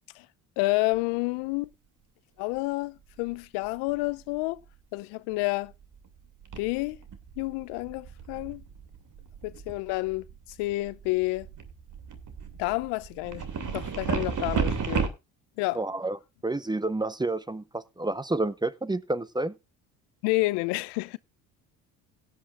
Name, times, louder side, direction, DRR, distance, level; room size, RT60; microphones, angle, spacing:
voice 1, 0.6-1.7 2.4-4.6 4.9-5.7 6.6-7.0 7.4-8.6 9.4-10.2 10.6-11.5 12.6-15.1 15.6-15.8 20.2-21.2, left 22 dB, 75° left, 0.7 m, -29 dB
sound 1, 0.9-1.0 3.2-3.4 3.6-4.4 5.7-6.1 6.4-15.1, right 6 dB, 50° right, 2.6 m, -34 dB
voice 2, 15.7-16.2 16.4-19.5, right 2 dB, 10° right, 0.8 m, -29 dB
17.0 x 10.0 x 2.5 m
hypercardioid pair, 60°, 41 cm